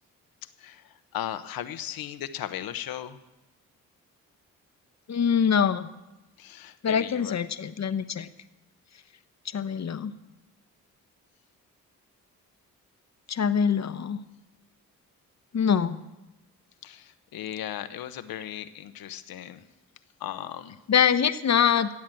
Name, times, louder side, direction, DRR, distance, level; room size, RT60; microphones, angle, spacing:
voice 1, 0.6-3.2 6.4-7.4 16.8-19.6 20.2-20.8, left 11 dB, 75° left, 11 dB, 1.0 m, -37 dB
voice 2, 5.1-5.9 6.8-8.3 9.5-10.1 13.3-14.2 15.5-16.0 20.9-21.9, left 7 dB, 50° left, 12 dB, 1.1 m, -24 dB
15.0 x 8.5 x 7.7 m, 1.0 s
supercardioid pair, 55°, 35 cm